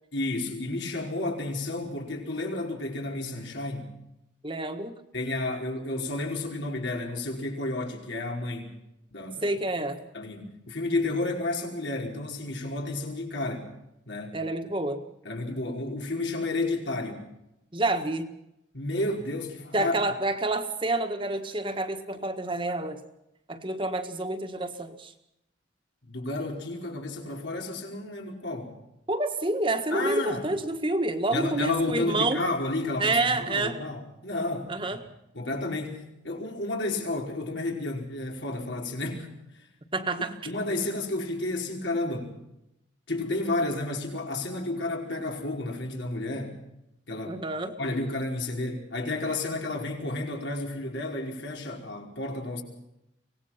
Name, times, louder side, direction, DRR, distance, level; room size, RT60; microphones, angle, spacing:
voice 1, 0.1-3.9 5.1-8.7 9.1-9.5 10.1-13.7 14.1-14.4 15.2-17.2 18.7-19.9 26.0-28.8 29.9-30.5 31.3-34.7 35.3-39.7 40.4-42.3 43.1-46.6 47.1-47.4 47.8-52.6, left 2 dB, 80° left, 5.0 m, -31 dB
voice 2, 4.4-5.0 9.4-10.0 14.3-15.0 17.7-18.3 19.7-23.0 23.5-25.1 29.1-32.4 33.0-33.8 34.7-35.0 39.9-40.3 47.3-47.7, right 2 dB, 25° right, 1.6 m, -28 dB
24.5 x 19.0 x 5.9 m
head